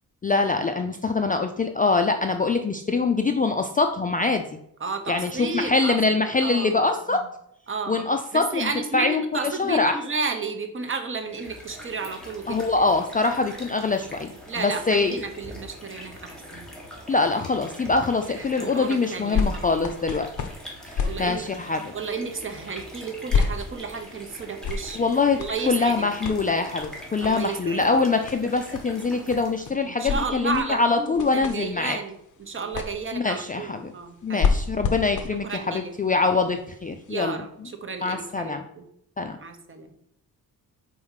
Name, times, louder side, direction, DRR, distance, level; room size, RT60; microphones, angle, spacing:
voice 1, 0.2-4.6 5.1-7.2 7.9-10.0 12.5-15.2 17.1-20.3 20.9-21.9 24.9-25.4 25.7-32.0 33.1-33.9 34.2-37.4 38.0-38.6 39.2-39.4, left 3 dB, 25° left, 6 dB, 0.4 m, -24 dB
voice 2, 4.8-6.0 6.4-6.8 7.1-7.2 7.7-8.0 8.3-12.6 14.5-16.7 18.4-19.8 21.0-21.4 21.9-25.1 25.4-26.1 27.2-28.0 29.8-34.9 35.4-35.9 37.1-37.5 37.8-38.9 39.4-39.9, right 4 dB, 35° right, 5 dB, 0.9 m, -32 dB
sound 1, 11.2-29.8, equal, ahead, 1.6 m, -43 dB
sound 2, 18.4-37.2 37.9-38.0, left 5 dB, 50° left, 0.8 m, -32 dB
4.7 x 4.3 x 5.6 m, 0.73 s
wide cardioid pair, 130°, 38 cm